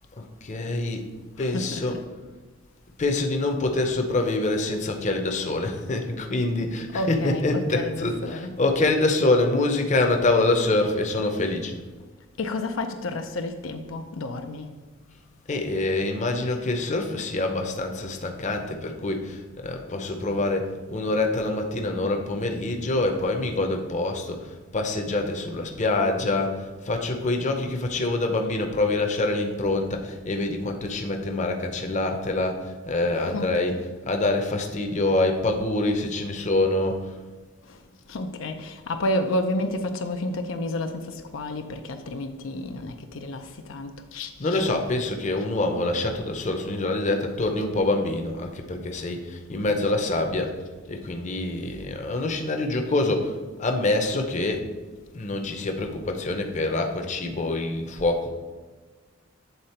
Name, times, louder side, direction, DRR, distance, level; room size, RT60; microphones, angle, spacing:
voice 1, 0.2-1.1 1.4-2.0 3.0-11.8 15.5-37.2 44.4-50.6 50.9-54.7 55.1-58.3, left 2 dB, 40° left, 0.7 m, -25 dB
voice 2, 1.4-2.0 6.9-8.5 12.4-14.7 33.3-33.8 37.7-37.8 38.1-44.6, left 1 dB, 90° left, 0.5 m, -31 dB
8.1 x 3.8 x 4.3 m
head